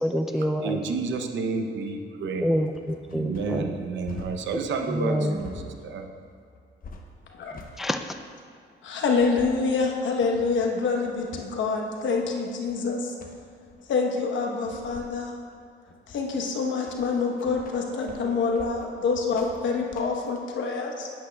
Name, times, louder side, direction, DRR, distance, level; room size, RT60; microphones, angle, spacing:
voice 1, 0.0-0.8 2.4-3.7 4.9-5.4 7.8-8.1, equal, ahead, 6 dB, 0.3 m, -27 dB
voice 2, 0.6-2.5 3.1-5.5 5.8-6.1, right 4 dB, 70° right, 5 dB, 0.8 m, -30 dB
sound 1, 1.8-20.4, left 3 dB, 45° left, 0.9 m, -46 dB
voice 3, 5.0-5.4 7.4-7.6 8.8-13.2 13.9-15.3 16.1-21.1, left 4 dB, 70° left, 1 dB, 1.1 m, -26 dB
10.0 x 8.3 x 2.3 m, 2.2 s
cardioid pair, 90°, 20 cm